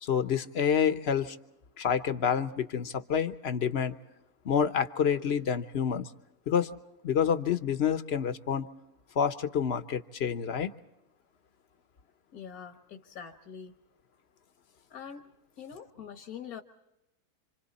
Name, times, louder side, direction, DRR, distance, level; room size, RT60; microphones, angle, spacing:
voice 1, 0.0-1.4 1.8-3.9 4.4-6.1 6.5-6.7 7.0-8.7 9.2-10.7, left 7 dB, 50° left, 11 dB, 1.1 m, -28 dB
voice 2, 12.3-13.7 14.9-15.3 15.6-16.6, left 7 dB, 75° left, 4 dB, 1.7 m, -44 dB
28.0 x 26.5 x 4.2 m, 0.94 s
omnidirectional pair, 1.6 m